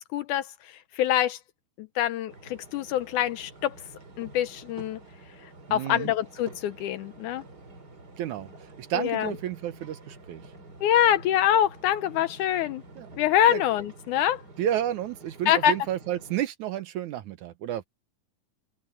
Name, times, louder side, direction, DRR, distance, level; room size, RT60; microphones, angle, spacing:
voice 1, 0.0-1.4 1.8-3.8 4.2-5.0 5.7-7.4 8.9-9.3 10.8-12.8 13.2-14.4 15.5-15.7, left 11 dB, 75° left, 2.0 m, -25 dB
sound 1, 2.3-16.4, right 2 dB, 30° right, 3.8 m, -49 dB
voice 2, 5.7-6.1 8.2-8.5 8.8-10.4 13.0-13.1 13.5-13.6 14.6-17.8, right 11 dB, 70° right, 2.1 m, -31 dB
open air
omnidirectional pair, 4.0 m